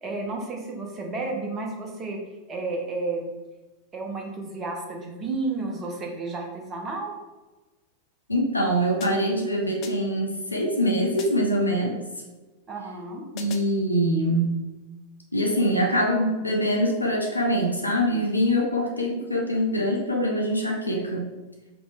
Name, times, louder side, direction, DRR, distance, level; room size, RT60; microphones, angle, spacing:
voice 1, 0.0-2.2 2.5-3.3 3.9-7.1 12.7-13.2, right 3 dB, 25° right, 1 dB, 1.0 m, -32 dB
voice 2, 8.3-12.0 13.3-14.7 15.3-21.3, equal, 85° left, 0 dB, 0.6 m, -24 dB
sound 1, 9.0-9.4 9.8-10.3 11.2-11.6 13.4-13.8, left 6 dB, 40° left, 0.5 m, -42 dB
5.0 x 3.1 x 3.4 m, 1.2 s
figure-of-eight pair, 90°, 0 cm